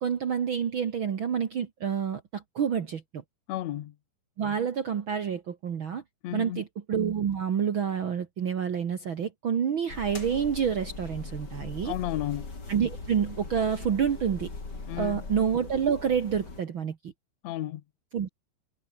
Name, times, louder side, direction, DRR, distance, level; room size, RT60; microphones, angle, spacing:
voice 1, 0.0-3.2 4.4-6.0 6.3-11.9 12.7-14.5 15.0-17.0 18.1-18.3, right 7 dB, 75° right, 1.1 m, -28 dB
voice 2, 3.5-3.9 6.2-6.6 11.8-12.5 14.9-15.2 17.4-17.8, left 13 dB, 80° left, 1.5 m, -33 dB
sound 1, 9.9-16.6, left 3 dB, 25° left, 4.4 m, -40 dB
omnidirectional pair, 4.8 m